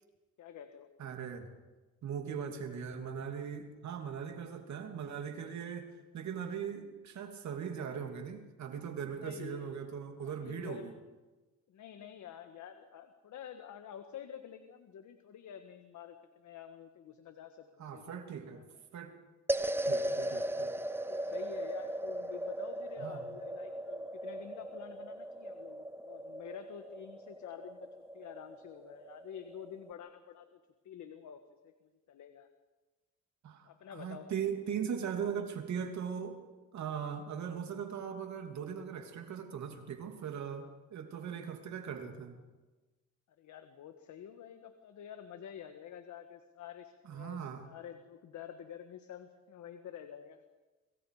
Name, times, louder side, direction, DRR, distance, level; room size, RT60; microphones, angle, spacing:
voice 1, 0.4-0.9 9.2-9.7 10.2-10.9 11.7-18.2 18.5-18.8 20.1-20.5 21.1-27.9 28.1-32.5 33.6-34.3 43.4-50.4, left 9 dB, 70° left, 7 dB, 1.6 m, -49 dB
voice 2, 1.0-1.5 2.0-11.0 17.8-18.6 18.9-19.1 19.8-20.7 23.0-23.2 33.4-36.4 36.7-42.4 47.0-47.6, right 7 dB, 65° right, 5 dB, 2.9 m, -39 dB
sound 1, 19.5-29.9, right 1 dB, 10° right, 0.8 m, -38 dB
27.0 x 23.0 x 5.0 m, 1.2 s
cardioid pair, 90°, 30 cm